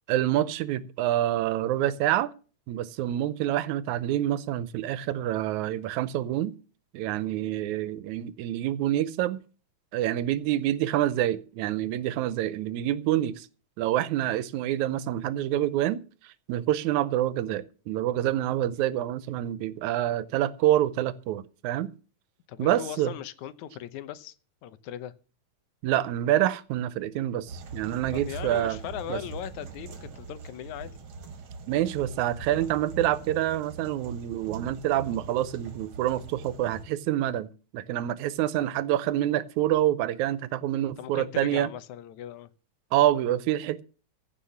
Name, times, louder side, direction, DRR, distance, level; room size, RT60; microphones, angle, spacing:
voice 1, 0.1-2.3 2.7-6.5 6.9-9.4 9.9-13.5 13.8-21.9 22.6-23.1 25.8-28.8 29.1-29.2 31.7-41.7 42.9-43.8, right 13 dB, 85° right, 2.1 m, -27 dB
voice 2, 22.5-24.4 24.6-25.1 28.1-31.1 41.0-42.5, left 11 dB, 80° left, 2.3 m, -39 dB
sound 1, 27.5-36.8, right 4 dB, 50° right, 1.9 m, -42 dB
15.0 x 5.7 x 7.0 m
omnidirectional pair, 3.3 m